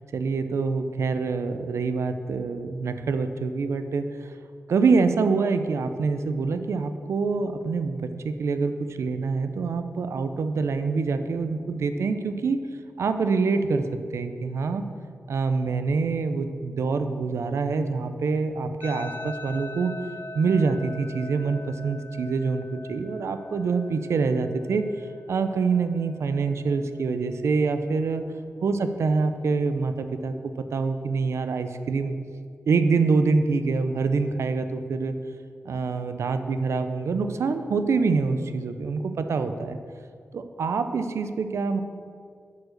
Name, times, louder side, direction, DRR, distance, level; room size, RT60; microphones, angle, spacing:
voice 1, 0.1-4.0 4.7-12.6 13.0-13.8 14.1-14.8 15.3-19.9 20.3-24.8 25.3-28.3 28.6-32.1 32.7-35.1 35.6-39.8 40.3-41.8, right 4 dB, 75° right, 9 dB, 0.5 m, -25 dB
sound 1, 18.8-27.9, left 2 dB, 40° left, 0.7 m, -42 dB
8.2 x 4.8 x 6.5 m, 2.1 s
wide cardioid pair, 135°, 5 cm